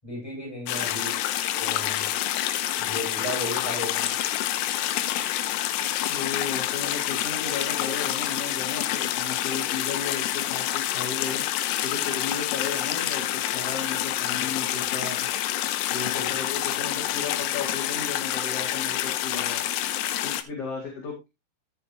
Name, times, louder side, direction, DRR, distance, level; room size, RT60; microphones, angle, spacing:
voice 1, 0.0-1.1 1.6-2.1 2.9-4.1 14.4-14.8 16.0-16.3, equal, 5° left, 7.2 m, -35 dB
sound 1, 0.7-20.4, left 13 dB, 80° left, 2.8 m, -28 dB
voice 2, 6.1-11.4 11.8-15.3 15.9-19.7 20.2-21.3, left 5 dB, 40° left, 2.7 m, -35 dB
13.0 x 7.8 x 2.9 m
omnidirectional pair, 5.1 m